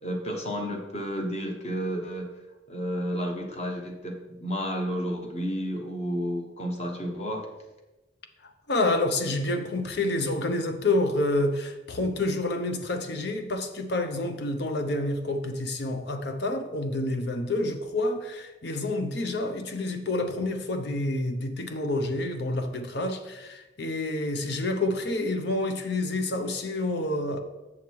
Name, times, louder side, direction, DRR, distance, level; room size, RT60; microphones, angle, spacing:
voice 1, 0.0-2.3 2.7-7.5, equal, 35° left, 1.3 m, -31 dB
voice 2, 8.7-27.4, left 2 dB, 65° left, 0.8 m, -28 dB
7.1 x 6.6 x 4.6 m
head